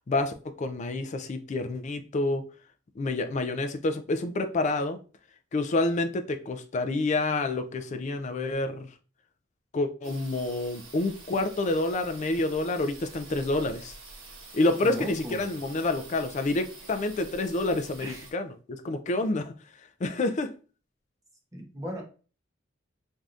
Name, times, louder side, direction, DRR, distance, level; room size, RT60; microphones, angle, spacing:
voice 1, 0.1-2.4 3.0-5.0 5.5-8.9 9.7-13.9 14.5-19.5 20.0-20.5, left 2 dB, 35° left, 0.3 m, -28 dB
sound 1, 10.0-18.3, right 3 dB, 85° right, 1.0 m, -47 dB
voice 2, 14.8-15.5 18.0-18.3 21.5-22.0, equal, 15° right, 0.8 m, -36 dB
3.4 x 2.6 x 2.4 m
head